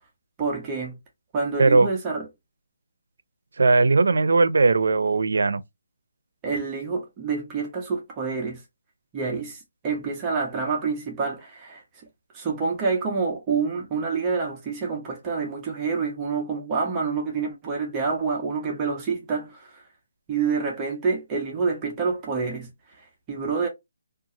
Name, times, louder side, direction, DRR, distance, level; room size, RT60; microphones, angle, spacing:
voice 1, 0.4-1.0 1.3-2.3 6.4-8.6 9.1-11.8 12.3-19.8 20.3-22.7 23.0-23.7, right 5 dB, 10° right, 0.5 m, -27 dB
voice 2, 3.6-5.6, right 3 dB, 75° right, 0.4 m, -18 dB
2.8 x 2.3 x 2.6 m
hypercardioid pair, 180°, 0 cm